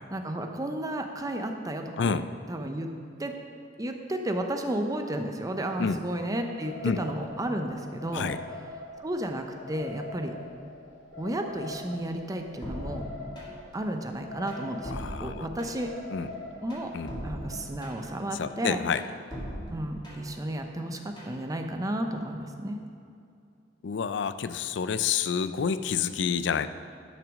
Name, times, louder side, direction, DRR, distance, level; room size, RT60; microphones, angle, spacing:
voice 1, 0.1-2.9 3.2-3.3 3.8-8.4 9.0-10.3 11.2-13.1 13.7-14.9 15.2-15.9 16.6-16.9 17.2-18.8 19.7-22.8, right 1 dB, 20° right, 5 dB, 0.6 m, -32 dB
sound 1, 6.6-17.6, left 2 dB, 85° left, 2.2 m, -44 dB
sound 2, 12.6-13.7 14.1-16.0 16.3-18.2 18.6-20.4 20.8-21.4, equal, 25° left, 2.1 m, -40 dB
voice 2, 14.9-15.5 16.1-16.3 16.9-17.1 18.4-19.0 23.8-26.7, left 6 dB, 70° left, 12 dB, 0.4 m, -28 dB
10.5 x 6.0 x 6.2 m, 2.5 s
head